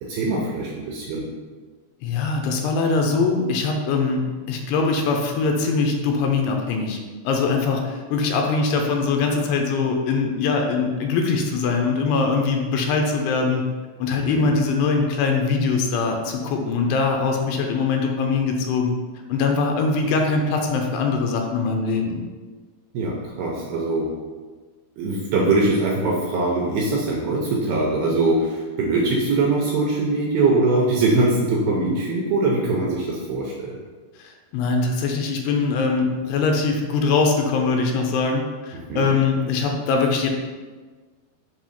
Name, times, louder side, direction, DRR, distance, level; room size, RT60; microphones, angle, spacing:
voice 1, 0.0-1.3 14.1-14.6 22.9-24.2 25.0-33.8 38.7-39.1, right 2 dB, 85° right, -2 dB, 2.2 m, -22 dB
voice 2, 2.0-4.2 4.5-7.0 7.2-13.6 14.0-18.9 19.3-22.2 34.2-40.3, left 4 dB, 85° left, 2 dB, 2.6 m, -22 dB
7.2 x 2.8 x 5.3 m, 1.4 s
omnidirectional pair, 5.0 m